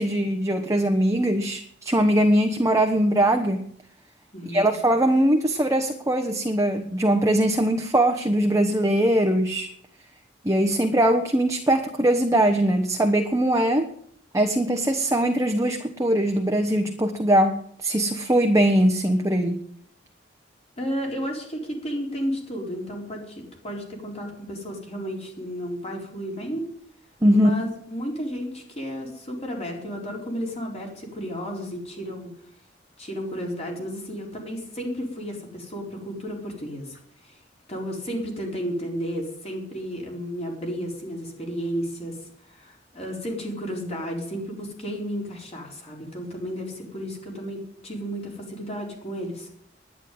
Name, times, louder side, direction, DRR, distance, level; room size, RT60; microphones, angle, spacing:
voice 1, 0.0-3.7 4.5-9.7 10.4-13.9 14.3-19.6 27.2-27.5, right 1 dB, 20° right, 5 dB, 1.1 m, -21 dB
voice 2, 20.8-26.6 27.3-32.3 33.0-37.0 37.2-37.4 37.7-42.2 42.5-49.5, equal, 35° left, 0 dB, 4.3 m, -33 dB
11.0 x 10.5 x 9.4 m, 0.65 s
head